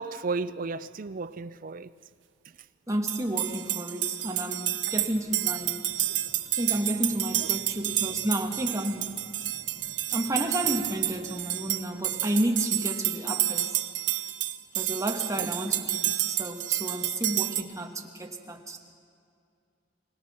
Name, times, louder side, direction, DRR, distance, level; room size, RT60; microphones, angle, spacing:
voice 1, 0.0-1.9 15.4-15.5, right 4 dB, 45° right, 0.5 m, -33 dB
voice 2, 2.9-6.0 6.5-9.1 10.1-13.8 14.7-18.8, right 1 dB, 15° right, 1.4 m, -31 dB
sound 1, 3.1-17.6, right 13 dB, 80° right, 0.9 m, -30 dB
sound 2, 4.8-13.0, left 1 dB, 90° left, 2.0 m, -55 dB
24.5 x 18.0 x 6.1 m
head